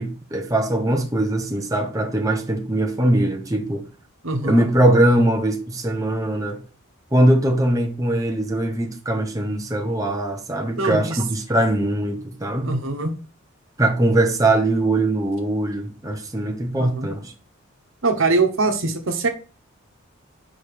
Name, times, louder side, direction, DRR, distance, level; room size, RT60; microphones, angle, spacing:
voice 1, 0.0-3.8 4.4-6.6 7.1-12.7 13.8-17.3, right 1 dB, 15° right, 0.8 m, -21 dB
voice 2, 4.2-4.6 10.7-11.2 12.6-13.1 16.8-17.1 18.0-19.3, right 3 dB, 70° right, 1.2 m, -22 dB
4.9 x 4.8 x 5.0 m
head